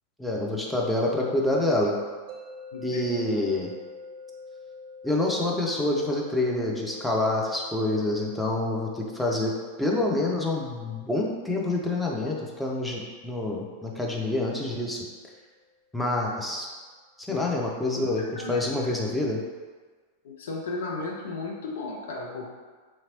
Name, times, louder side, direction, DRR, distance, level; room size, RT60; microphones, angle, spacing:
voice 1, 0.2-1.9 2.8-3.7 5.0-9.5 9.8-15.0 15.9-16.7 17.2-19.4, left 2 dB, ahead, -3 dB, 0.5 m, -27 dB
sound 1, 2.3-15.4, left 3 dB, 45° right, 0.6 m, -48 dB
voice 2, 2.7-3.0 17.3-17.4 18.0-19.0 20.2-22.5, left 3 dB, 60° left, 0 dB, 0.4 m, -35 dB
3.2 x 2.9 x 2.8 m, 1.5 s
figure-of-eight pair, 90°, 0 cm